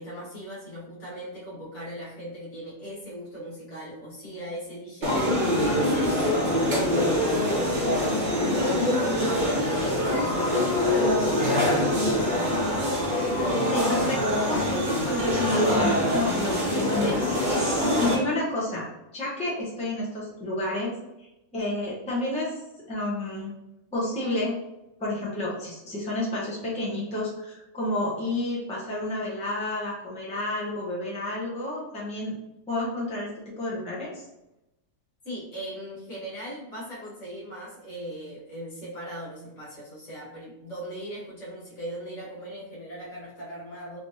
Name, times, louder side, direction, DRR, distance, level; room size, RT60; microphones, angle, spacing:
voice 1, 0.0-12.9 35.2-44.0, equal, 60° left, -8 dB, 1.8 m, -39 dB
sound 1, 5.0-18.1, left 1 dB, 40° right, 0.9 m, -24 dB
voice 2, 13.7-18.8 19.1-20.9 21.5-22.5 22.9-23.5 23.9-24.6 25.0-32.4 32.7-33.3 33.6-34.2, left 1 dB, 5° left, -7 dB, 0.8 m, -30 dB
3.2 x 3.1 x 2.7 m, 0.92 s
omnidirectional pair, 1.5 m